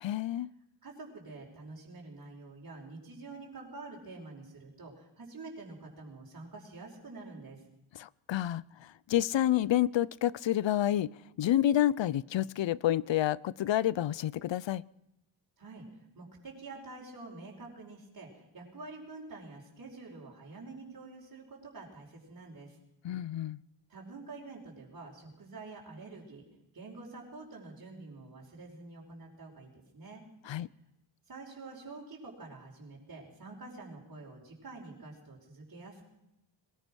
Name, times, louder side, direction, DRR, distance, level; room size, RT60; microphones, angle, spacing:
voice 1, 0.0-0.5 7.9-11.1 11.4-14.8 23.0-23.6 30.5-30.7, left 12 dB, 70° left, 22 dB, 0.7 m, -29 dB
voice 2, 0.8-7.6 15.6-22.8 23.9-26.5 26.7-30.2 31.3-36.0, right 3 dB, 45° right, -3 dB, 5.3 m, -47 dB
22.0 x 20.0 x 6.3 m, 0.86 s
wide cardioid pair, 115°, 47 cm